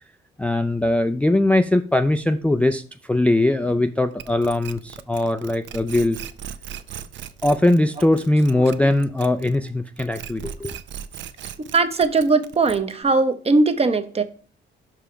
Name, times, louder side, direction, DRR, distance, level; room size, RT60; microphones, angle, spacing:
voice 1, 0.4-6.2 7.4-10.7, left 1 dB, 5° left, 0.3 m, -20 dB
sound 1, 4.2-9.7 10.0-13.0, right 9 dB, 70° right, 0.5 m, -37 dB
voice 2, 11.6-14.2, right 3 dB, 30° right, 0.8 m, -19 dB
5.7 x 5.0 x 5.0 m
cardioid pair, 90°, 20 cm